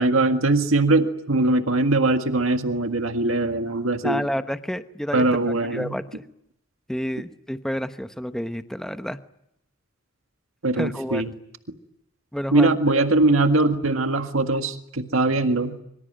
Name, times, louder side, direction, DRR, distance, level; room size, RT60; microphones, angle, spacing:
voice 1, 0.0-4.2 5.1-5.9 10.6-11.3 12.5-15.8, right 2 dB, 85° right, 7 dB, 1.8 m, -21 dB
voice 2, 4.0-5.3 5.7-6.2 6.9-9.2 10.7-11.3 12.3-13.0, equal, 5° left, 9 dB, 1.0 m, -29 dB
25.5 x 24.5 x 8.9 m, 0.79 s
head